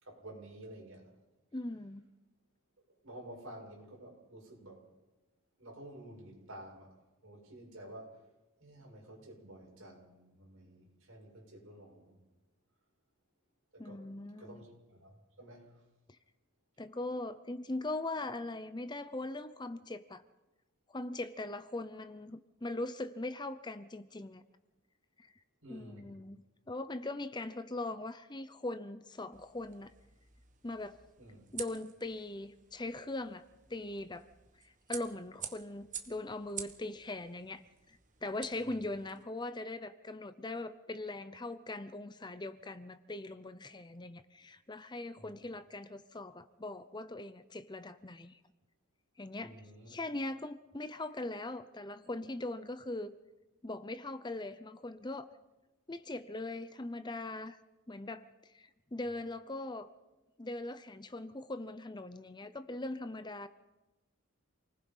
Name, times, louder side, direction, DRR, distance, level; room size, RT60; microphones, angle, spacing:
voice 1, 0.0-1.1 3.0-4.8 5.6-7.0 7.2-8.2 8.6-12.2 13.7-14.1 14.4-15.7 25.6-26.2 31.2-31.4 38.6-38.8 45.2-45.3 49.4-49.9, right 1 dB, 65° right, -1 dB, 6.8 m, -51 dB
voice 2, 1.5-2.0 13.8-14.7 16.8-20.2 20.9-24.4 25.2-25.3 25.7-29.9 30.6-31.0 31.5-33.4 33.7-34.3 34.9-37.6 38.2-48.4 49.2-49.6 49.9-53.1 53.6-55.3 55.9-57.6 57.9-58.3 58.5-59.9 60.4-63.5, left 2 dB, 20° left, 12 dB, 0.7 m, -40 dB
sound 1, 29.3-39.2, right 9 dB, 35° right, 1.4 m, -49 dB
28.5 x 19.5 x 5.6 m, 1.1 s
head